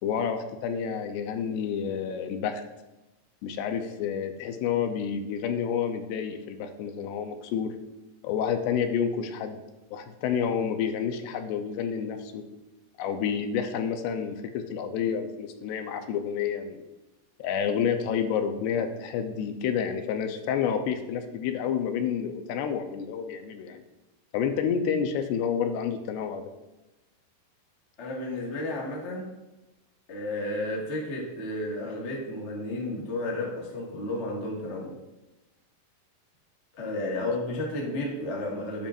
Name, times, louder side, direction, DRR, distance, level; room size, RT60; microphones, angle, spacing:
voice 1, 0.0-2.6 3.4-7.8 8.2-9.6 9.9-12.5 13.0-16.8 17.4-23.8 24.3-26.5, left 7 dB, 85° left, 6 dB, 2.9 m, -29 dB
voice 2, 28.0-29.3 30.1-35.0 36.7-38.9, left 1 dB, 50° left, -3 dB, 0.8 m, -32 dB
12.5 x 9.1 x 2.6 m, 1.0 s
omnidirectional pair, 4.8 m